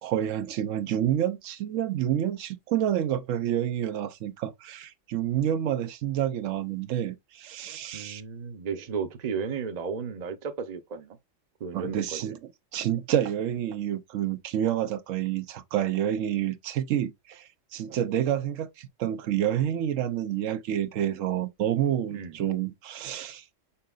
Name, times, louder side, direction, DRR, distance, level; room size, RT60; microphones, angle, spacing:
voice 1, 0.0-8.2 11.7-12.4 12.7-23.4, right 11 dB, 85° right, 1.0 m, -28 dB
voice 2, 7.9-11.2 11.6-12.3 22.1-22.4, right 6 dB, 40° right, 0.7 m, -34 dB
5.7 x 3.8 x 2.4 m
omnidirectional pair, 1.3 m